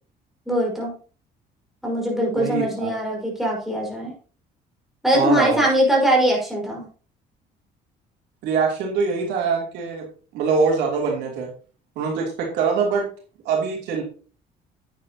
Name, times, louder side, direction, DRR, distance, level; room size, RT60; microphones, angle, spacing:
voice 1, 0.4-0.9 1.8-4.1 5.0-6.9, equal, ahead, -3 dB, 5.1 m, -21 dB
voice 2, 2.3-2.9 5.1-5.6 8.4-10.1 10.3-11.5 11.9-13.0 13.4-14.0, right 5 dB, 85° right, -1 dB, 3.1 m, -23 dB
9.9 x 9.0 x 2.9 m, 0.39 s
cardioid pair, 110°, 17 cm